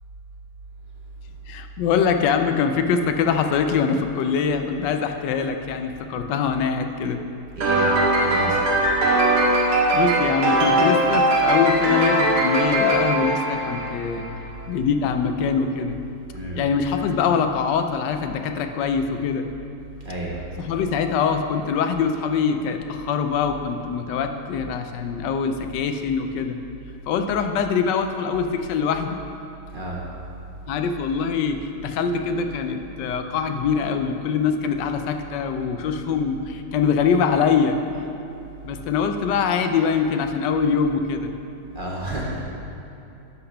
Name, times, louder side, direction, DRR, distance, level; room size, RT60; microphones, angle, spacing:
voice 1, 1.5-7.2 9.9-14.3 14.7-16.0 16.5-19.5 20.6-26.6 27.1-29.2 30.7-37.8 38.6-41.3, left 6 dB, 85° left, 6 dB, 1.2 m, -23 dB
voice 2, 7.6-7.9 8.2-8.6 16.3-16.6 20.0-20.4 29.7-30.0 41.7-42.4, right 1 dB, 35° right, -4 dB, 1.1 m, -30 dB
sound 1, 7.6-14.2, right 1 dB, 70° right, 1.7 m, -20 dB
11.5 x 3.9 x 5.6 m, 2.8 s
omnidirectional pair, 1.8 m